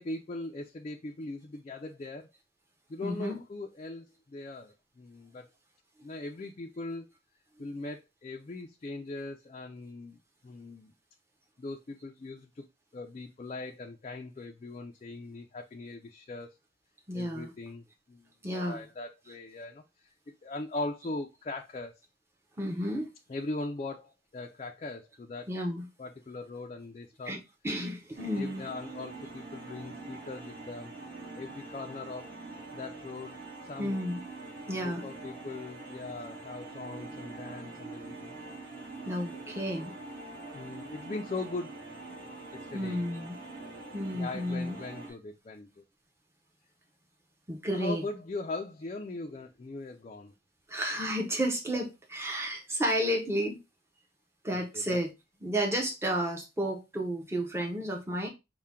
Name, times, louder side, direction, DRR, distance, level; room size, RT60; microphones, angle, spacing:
voice 1, 0.0-2.3 2.9-5.4 6.0-7.1 7.6-10.2 10.4-10.9 11.6-12.6 12.9-16.6 17.1-20.1 20.4-22.0 23.3-25.5 26.0-27.4 28.3-30.9 31.4-32.3 32.7-33.4 33.6-34.0 34.7-38.4 39.3-39.6 40.5-42.2 42.5-43.0 44.1-45.8 47.7-50.3 54.5-55.1, left 2 dB, 35° left, 0.3 m, -40 dB
voice 2, 3.0-3.4 17.1-17.5 18.4-18.8 22.6-23.1 25.5-25.9 27.3-27.4 27.6-28.6 33.8-34.2 34.7-35.0 39.1-39.9 42.7-43.4 43.9-44.8 47.5-48.0 50.7-53.6 54.4-55.1 55.4-58.3, equal, 15° right, 0.7 m, -31 dB
sound 1, 28.2-45.1, right 3 dB, 50° right, 1.6 m, -44 dB
5.5 x 2.2 x 3.6 m
head